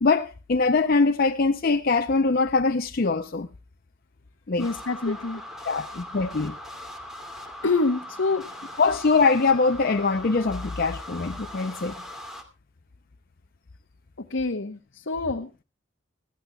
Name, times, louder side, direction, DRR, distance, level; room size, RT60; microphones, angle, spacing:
voice 1, 0.0-3.5 4.5-4.7 5.7-6.6 8.8-11.9, left 4 dB, 50° left, 0.6 m, -22 dB
voice 2, 4.6-5.4 7.6-8.5 14.2-15.6, left 3 dB, 70° left, 1.0 m, -27 dB
sound 1, 4.6-12.4, left 1 dB, ahead, 2.6 m, -40 dB
20.5 x 15.5 x 2.3 m
head